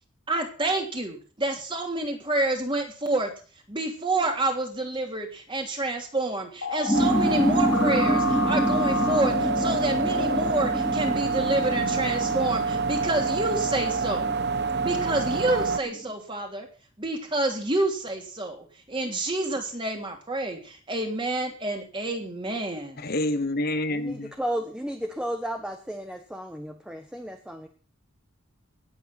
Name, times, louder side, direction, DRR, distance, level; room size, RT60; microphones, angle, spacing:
voice 1, 0.3-3.3 3.7-14.3 14.8-16.7 17.0-23.0, right 2 dB, 25° right, 3 dB, 3.1 m, -28 dB
sound 1, 6.6-10.5, left 5 dB, 75° left, 1.9 m, -32 dB
sound 2, 6.9-16.1, equal, 15° left, 2.4 m, -28 dB
sound 3, 6.9-15.8, right 5 dB, 55° right, 1.1 m, -27 dB
voice 2, 23.0-24.3, left 1 dB, 45° left, 10 dB, 1.2 m, -27 dB
voice 3, 23.9-27.7, equal, 5° right, 5 dB, 1.2 m, -33 dB
19.0 x 8.4 x 5.9 m, 0.38 s
head